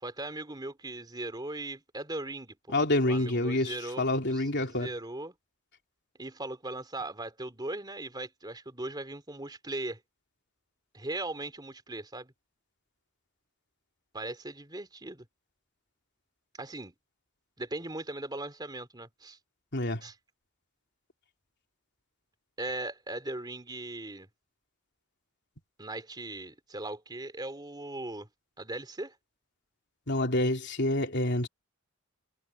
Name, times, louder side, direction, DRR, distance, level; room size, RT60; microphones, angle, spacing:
voice 1, 0.0-2.8 3.1-5.3 6.2-10.0 10.9-12.3 14.1-15.3 16.6-16.9 17.6-19.4 20.0-20.2 22.6-24.3 25.8-28.3 28.6-29.2, right 2 dB, 20° right, 2.9 m, -39 dB
voice 2, 2.7-4.9 19.7-20.0 30.1-31.5, left 1 dB, 55° left, 3.3 m, -27 dB
head